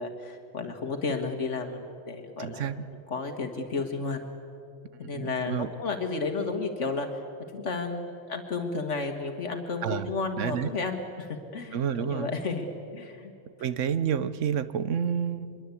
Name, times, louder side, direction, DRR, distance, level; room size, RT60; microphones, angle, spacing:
voice 1, 0.0-2.7 3.1-4.2 5.0-7.1 7.5-12.7 12.9-13.3, left 4 dB, 80° left, 4 dB, 1.9 m, -32 dB
voice 2, 2.4-2.9 5.1-5.7 9.8-10.7 11.7-12.3 13.6-15.6, right 8 dB, 90° right, 14 dB, 1.2 m, -29 dB
24.5 x 22.0 x 8.4 m, 2.5 s
omnidirectional pair, 1.2 m